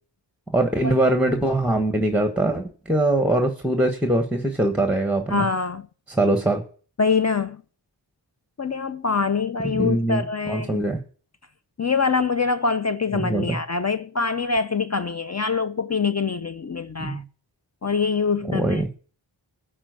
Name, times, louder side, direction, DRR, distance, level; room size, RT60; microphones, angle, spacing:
voice 1, 0.5-5.5 6.1-6.6 9.6-11.0 13.1-13.6 17.0-17.2 18.5-18.9, right 1 dB, 5° right, 1.2 m, -22 dB
voice 2, 5.3-5.8 7.0-7.6 8.6-10.9 11.8-17.2 17.8-19.0, left 5 dB, 35° left, 0.5 m, -24 dB
11.5 x 4.4 x 8.0 m
wide cardioid pair, 70°, 44 cm